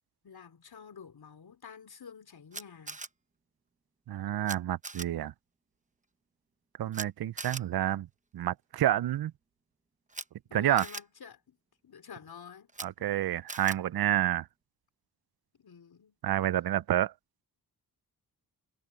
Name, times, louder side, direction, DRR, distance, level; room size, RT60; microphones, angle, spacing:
voice 1, 0.2-3.0 10.5-11.6 11.8-12.7 13.0-13.1 15.5-16.2, left 7 dB, 65° left, 3.6 m, -49 dB
Camera, 2.5-3.1 4.5-4.6 4.8-5.1 6.9-7.1 7.4-7.6 10.1-10.2 10.8-11.0 12.7-12.9 13.5-13.8, right 3 dB, 20° right, 0.8 m, -40 dB
voice 2, 4.1-5.3 6.8-8.1 8.3-9.3 10.5-10.8 12.8-14.5 16.2-17.1, right 12 dB, 65° right, 0.5 m, -29 dB
wide cardioid pair, 120°, 39 cm